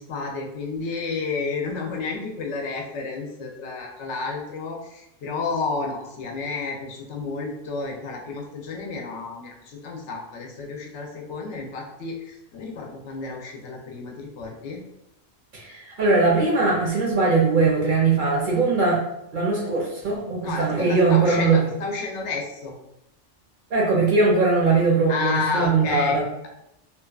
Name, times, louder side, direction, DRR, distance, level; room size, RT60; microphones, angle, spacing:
voice 1, 0.0-14.8 20.4-22.8 25.1-26.5, left 4 dB, 80° left, 0 dB, 0.9 m, -31 dB
voice 2, 15.5-19.0 19.3-21.6 23.7-26.2, right 3 dB, 55° right, -3 dB, 0.6 m, -20 dB
2.8 x 2.2 x 2.3 m, 0.83 s
omnidirectional pair, 1.2 m